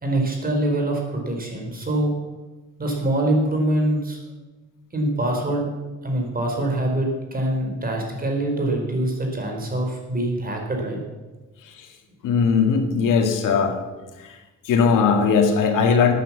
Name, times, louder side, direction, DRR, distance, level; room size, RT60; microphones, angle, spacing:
voice 1, 0.0-2.1 2.8-4.2 4.9-5.7 6.0-11.0, right 1 dB, 30° right, 1 dB, 3.9 m, -24 dB
voice 2, 12.2-13.8 14.2-14.4 14.6-16.1, left 5 dB, 80° left, 5 dB, 2.1 m, -19 dB
13.5 x 9.2 x 7.2 m, 1.2 s
cardioid pair, 120°, 31 cm